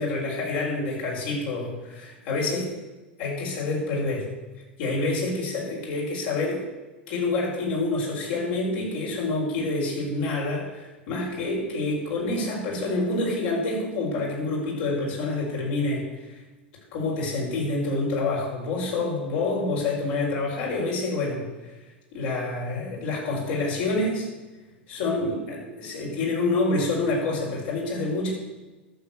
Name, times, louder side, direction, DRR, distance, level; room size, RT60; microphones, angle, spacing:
voice 1, 0.0-2.7 3.2-4.3 4.8-6.6 7.1-16.4 16.9-21.8 22.1-24.3 24.9-28.3, left 2 dB, 55° left, -2 dB, 5.2 m, -27 dB
11.5 x 7.6 x 8.4 m, 1.2 s
figure-of-eight pair, 85°, 6 cm